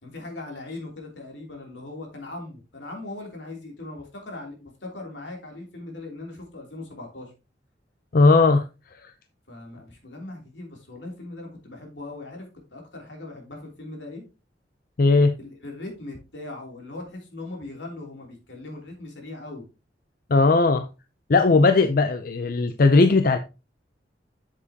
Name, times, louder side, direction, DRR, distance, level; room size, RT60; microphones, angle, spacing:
voice 1, 0.0-7.3 9.5-14.2 15.4-19.6, left 2 dB, 80° left, 3.1 m, -39 dB
voice 2, 8.1-8.6 15.0-15.3 20.3-20.9 21.3-23.4, left 3 dB, 55° left, 0.5 m, -17 dB
8.3 x 7.5 x 2.8 m
head